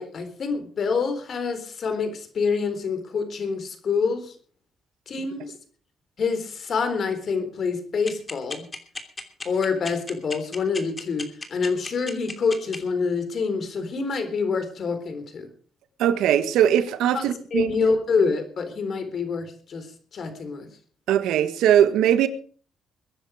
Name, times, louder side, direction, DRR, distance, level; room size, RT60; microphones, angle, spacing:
voice 1, 0.0-4.3 5.1-5.5 6.2-8.7 9.4-15.5 17.1-19.9 20.1-20.7, left 5 dB, 50° left, 3.8 m, -26 dB
sound 1, 8.1-12.8, left 3 dB, 25° left, 2.9 m, -33 dB
voice 2, 16.0-17.7 21.1-22.3, right 10 dB, 85° right, 1.6 m, -20 dB
22.0 x 10.0 x 5.0 m
cardioid pair, 90°, 0 cm